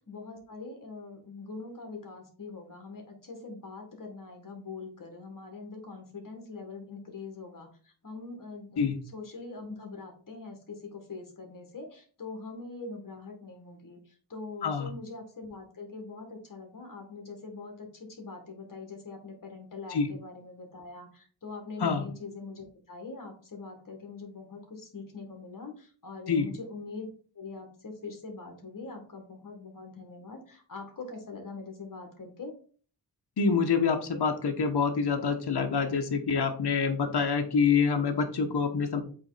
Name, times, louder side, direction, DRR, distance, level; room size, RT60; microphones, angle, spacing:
voice 1, 0.1-27.1 27.4-32.5, left 3 dB, 50° left, 3 dB, 1.8 m, -43 dB
voice 2, 14.6-14.9 19.9-20.1 21.8-22.1 26.3-26.5 33.4-39.0, left 5 dB, 65° left, 5 dB, 1.1 m, -26 dB
7.9 x 3.3 x 4.1 m, 0.42 s
wide cardioid pair, 105°, 43 cm